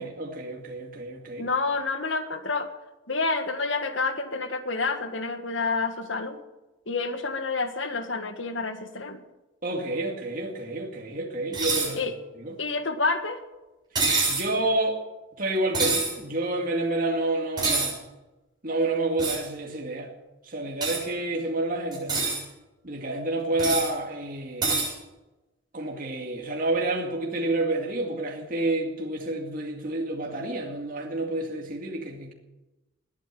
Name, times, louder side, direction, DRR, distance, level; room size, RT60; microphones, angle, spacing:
voice 1, 0.0-1.5 9.6-12.5 14.3-15.0 15.4-18.0 18.6-20.1 20.4-22.3 22.8-24.7 25.7-32.3, right 2 dB, 45° right, 2.2 m, -29 dB
voice 2, 1.4-2.7 3.1-6.4 6.9-9.2 12.0-12.1 12.6-13.4, left 3 dB, 80° left, 1.7 m, -28 dB
sound 1, 11.5-11.9 13.9-14.5 15.7-16.1 17.6-17.9 19.2-19.4 20.8-21.0 21.9-22.4 23.6-23.9 24.6-24.9, right 3 dB, 20° right, 7.7 m, -25 dB
20.5 x 9.1 x 7.7 m
head